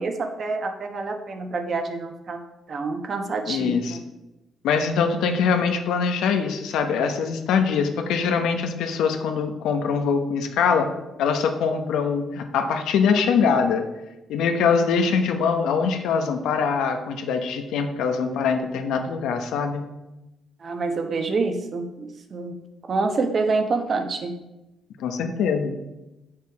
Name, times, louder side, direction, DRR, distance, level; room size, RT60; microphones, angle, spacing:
voice 1, 0.0-2.4 2.7-4.0 20.6-22.6 22.9-24.3, right 3 dB, 50° right, 5 dB, 1.1 m, -27 dB
voice 2, 3.5-4.0 4.6-10.9 11.2-13.8 14.3-19.8 25.0-25.8, left 6 dB, 85° left, 6 dB, 1.0 m, -23 dB
7.5 x 6.5 x 4.8 m, 0.98 s
cardioid pair, 90°, 0 cm